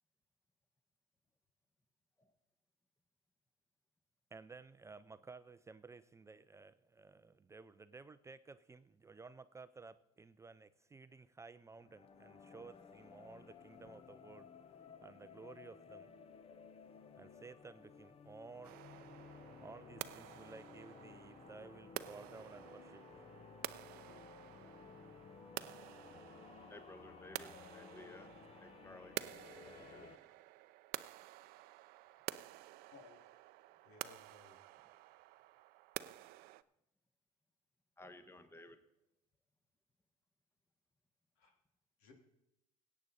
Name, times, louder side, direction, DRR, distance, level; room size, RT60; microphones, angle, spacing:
voice 1, 4.3-14.5 15.0-16.1 17.2-18.8 19.6-23.2, right 4 dB, 15° right, 13 dB, 0.5 m, -55 dB
sound 1, 11.8-30.2, left 6 dB, 35° left, 0.9 m, -57 dB
sound 2, 18.6-36.6, right 17 dB, 65° right, 0.5 m, -50 dB
voice 2, 26.7-28.3 28.6-29.2 29.6-30.4 38.0-38.8, left 1 dB, 15° left, 10 dB, 1.2 m, -56 dB
voice 3, 33.8-34.6 41.4-41.5 42.0-42.1, left 4 dB, 75° left, 4 dB, 2.6 m, -60 dB
16.5 x 8.6 x 4.1 m, 0.87 s
supercardioid pair, 90°, 17 cm